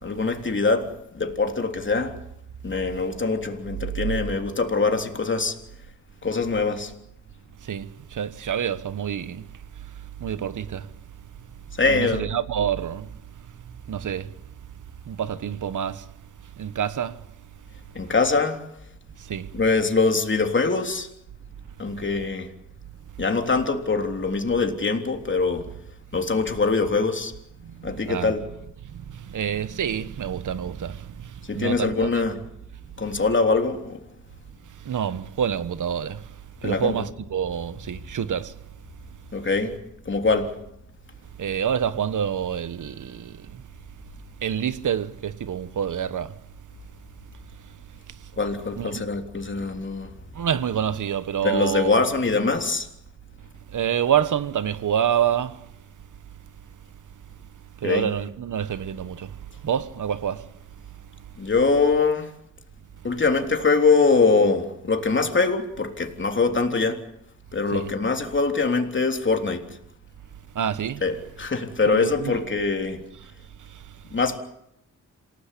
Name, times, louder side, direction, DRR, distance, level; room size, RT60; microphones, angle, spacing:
voice 1, 0.0-2.2 2.6-5.5 6.2-6.9 11.8-12.3 17.9-18.6 19.5-21.1 21.8-22.5 23.2-25.7 26.1-27.3 27.8-28.4 31.5-32.4 33.0-34.0 36.6-37.0 39.3-39.7 40.0-40.5 48.4-50.1 51.4-52.9 57.8-58.1 61.4-62.3 63.0-67.0 67.5-69.6 71.0-73.0 74.1-74.4, left 4 dB, 40° left, 3.5 m, -23 dB
voice 2, 7.6-9.9 10.2-10.9 11.9-13.2 13.9-14.3 15.1-16.1 16.6-17.3 19.2-19.5 27.6-28.3 28.8-32.2 33.1-33.2 34.8-36.4 36.6-38.6 41.4-43.6 44.4-46.4 48.1-48.3 48.8-49.0 50.3-52.1 53.7-55.7 57.8-60.5 67.7-67.9 70.5-71.0 71.9-72.4 73.6-74.0, right 9 dB, 75° right, 1.3 m, -28 dB
27.5 x 18.5 x 8.4 m
cardioid pair, 80°, 31 cm